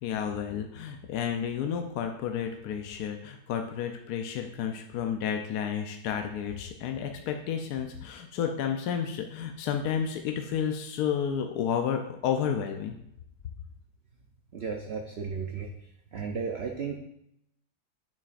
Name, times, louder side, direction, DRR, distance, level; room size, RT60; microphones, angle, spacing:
voice 1, 0.0-13.0, left 8 dB, 75° left, 4 dB, 1.1 m, -31 dB
voice 2, 14.5-15.7 16.1-17.0, right 5 dB, 55° right, 3 dB, 0.7 m, -34 dB
8.7 x 7.4 x 2.5 m, 0.78 s
omnidirectional pair, 1.7 m